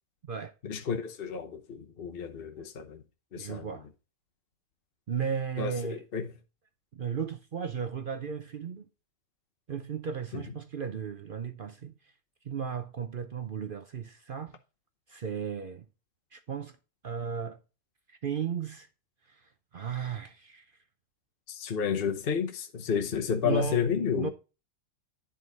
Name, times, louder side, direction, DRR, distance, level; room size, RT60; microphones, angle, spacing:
voice 1, 0.6-3.0 3.3-3.7 5.6-6.3 10.3-10.4 21.5-24.3, left 6 dB, 45° left, 1.0 m, -31 dB
voice 2, 3.4-3.9 5.1-6.0 6.9-8.9 9.7-11.9 12.4-14.6 15.1-15.9 16.3-16.8 17.0-17.6 18.2-18.9 19.3-19.4 19.7-20.6 23.4-24.3, right 7 dB, 55° right, 0.6 m, -35 dB
11.0 x 3.9 x 3.9 m
omnidirectional pair, 1.6 m